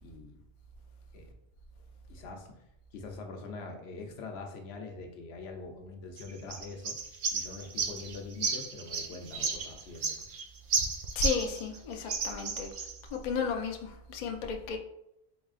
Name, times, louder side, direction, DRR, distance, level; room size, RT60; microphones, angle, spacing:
voice 1, 0.0-0.4 1.1-1.3 2.1-2.6 2.9-7.0 7.3-10.2, left 3 dB, 80° left, 3 dB, 0.9 m, -44 dB
sound 1, 6.2-11.8 12.1-13.0, right 5 dB, 60° right, 0.7 m, -33 dB
voice 2, 11.2-12.7 13.1-14.8, left 5 dB, 55° left, 3 dB, 0.6 m, -33 dB
3.8 x 3.6 x 2.4 m, 0.82 s
omnidirectional pair, 1.1 m